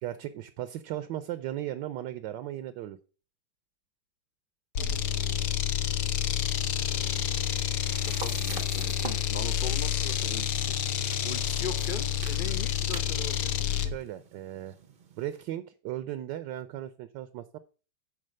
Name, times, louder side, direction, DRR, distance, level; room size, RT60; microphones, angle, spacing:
voice 1, 0.0-3.0 13.8-14.8 15.2-17.6, right 13 dB, 70° right, 12 dB, 1.2 m, -36 dB
sound 1, 4.8-14.0, left 10 dB, 65° left, 1.2 m, -29 dB
sound 2, 7.1-15.4, right 5 dB, 45° right, 0.7 m, -46 dB
voice 2, 7.8-13.5, left 5 dB, 45° left, 9 dB, 0.6 m, -41 dB
10.0 x 4.1 x 6.4 m, 0.37 s
omnidirectional pair, 2.1 m